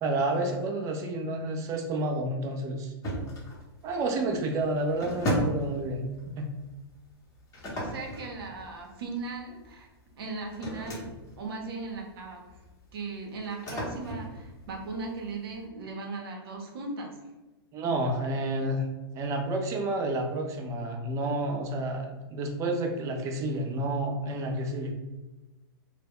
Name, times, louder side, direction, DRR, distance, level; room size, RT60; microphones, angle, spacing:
voice 1, 0.0-2.9 3.8-6.1 6.4-6.5 17.7-18.9 19.1-24.9, right 2 dB, 25° right, 3 dB, 0.4 m, -30 dB
sound 1, 3.0-15.6, equal, 25° left, 0.7 m, -37 dB
voice 2, 7.7-9.9 10.2-11.1 11.4-12.4 12.9-17.1, right 3 dB, 70° right, 2 dB, 0.7 m, -37 dB
2.2 x 2.0 x 3.4 m, 1.1 s
hypercardioid pair, 135°, 13 cm